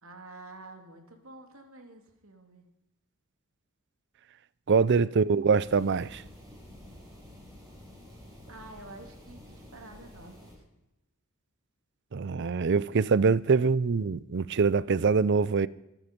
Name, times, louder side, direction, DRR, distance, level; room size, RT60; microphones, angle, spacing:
voice 1, 0.0-2.7 4.9-5.6 8.5-10.6 13.6-13.7, right 2 dB, 70° right, 2.8 m, -49 dB
voice 2, 4.7-6.2 12.1-15.7, right 5 dB, 55° right, 0.5 m, -24 dB
sound 1, 5.5-10.5, left 1 dB, 15° right, 7.2 m, -50 dB
24.5 x 10.0 x 5.3 m
head